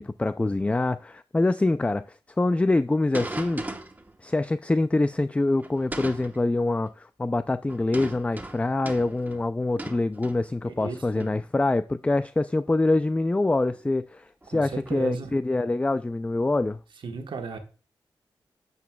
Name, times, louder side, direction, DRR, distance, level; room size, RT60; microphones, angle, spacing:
voice 1, 0.0-3.6 4.2-16.8, left 2 dB, 15° left, 0.3 m, -25 dB
sound 1, 3.1-4.2 5.6-6.4 7.7-10.8 11.2-11.5 12.7-12.8 13.7-13.9 14.4-15.0, right 2 dB, 20° right, 1.0 m, -38 dB
voice 2, 10.6-11.3 14.5-15.3 17.0-17.6, right 4 dB, 70° right, 1.4 m, -34 dB
9.1 x 8.0 x 2.3 m
cardioid pair, 70°, 9 cm